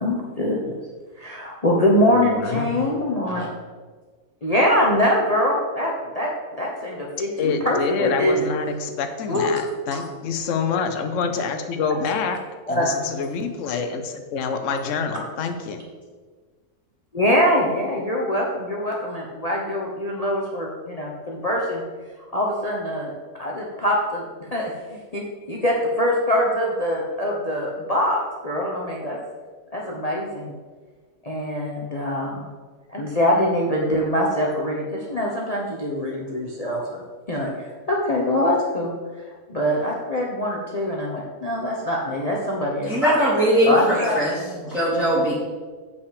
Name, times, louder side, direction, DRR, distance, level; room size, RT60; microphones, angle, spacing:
voice 1, 0.0-0.7 1.2-3.5 4.4-6.3 6.6-8.4 9.3-9.5 9.9-10.1 12.7-13.0 17.1-21.8 22.3-23.1 23.4-24.2 24.5-29.2 29.7-30.5 31.2-32.5 32.9-37.5 37.9-38.9 39.5-43.0 43.6-44.7, equal, 30° left, -2 dB, 0.9 m, -23 dB
voice 2, 2.1-3.0 7.4-12.4 12.7-15.8, left 5 dB, 65° left, 6 dB, 1.1 m, -27 dB
voice 3, 42.9-44.3 44.7-45.3, equal, ahead, -11 dB, 2.1 m, -20 dB
8.1 x 5.8 x 5.0 m, 1.4 s
omnidirectional pair, 1.5 m